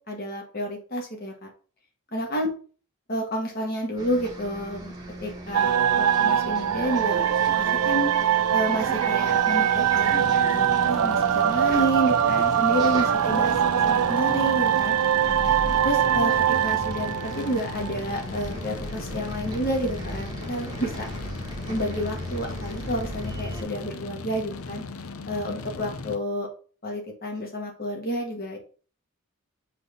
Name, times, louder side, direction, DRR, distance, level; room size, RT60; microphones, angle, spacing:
voice 1, 0.1-1.5 2.1-2.5 3.1-4.9 5.2-7.3 7.6-8.1 8.5-15.0 15.8-16.3 16.6-21.1 21.7-24.8 25.3-26.5 26.8-28.6, equal, 45° left, 1 dB, 1.8 m, -30 dB
Bus, 4.0-23.6, right 1 dB, 20° right, 1.2 m, -37 dB
sound 1, 5.5-18.1, right 9 dB, 85° right, 0.4 m, -22 dB
sound 2, 10.0-26.2, left 4 dB, 75° left, 0.6 m, -38 dB
6.2 x 3.6 x 5.6 m, 0.40 s
head